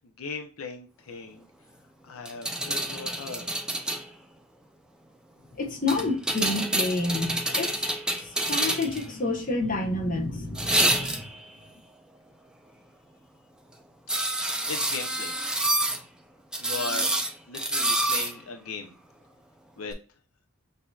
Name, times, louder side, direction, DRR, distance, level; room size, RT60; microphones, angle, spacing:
voice 1, 0.2-1.5 2.0-3.5 14.7-15.3 16.6-17.2 17.5-19.0 19.8-19.9, left 4 dB, 80° left, 0.6 m, -37 dB
sound 1, 2.2-4.0 5.9-9.0 10.5-11.4 14.1-16.0 16.5-18.3 19.9-20.0, right 1 dB, 5° right, 0.4 m, -27 dB
voice 2, 5.6-7.7 8.4-11.2, left 2 dB, 40° left, 0.9 m, -29 dB
6.2 x 2.7 x 2.3 m
head